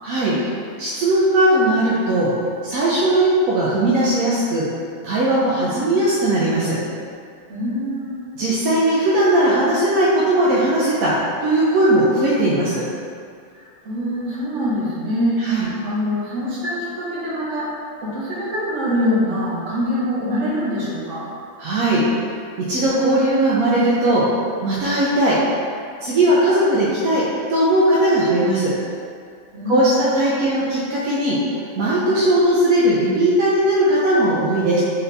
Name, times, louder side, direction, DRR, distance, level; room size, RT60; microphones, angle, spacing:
voice 1, 0.0-0.5 0.8-2.3 2.6-4.7 5.0-6.8 8.4-11.1 11.4-12.8 15.4-15.7 21.6-22.0 22.7-24.2 24.6-25.4 26.0-27.2 27.5-28.7 29.7-31.4 31.8-34.8, right 1 dB, 80° right, -8 dB, 1.0 m, -18 dB
voice 2, 7.5-8.3 13.5-17.7 18.0-21.3 29.5-30.3, equal, 60° right, -8 dB, 1.3 m, -24 dB
4.0 x 2.7 x 3.3 m, 2.3 s
omnidirectional pair, 1.5 m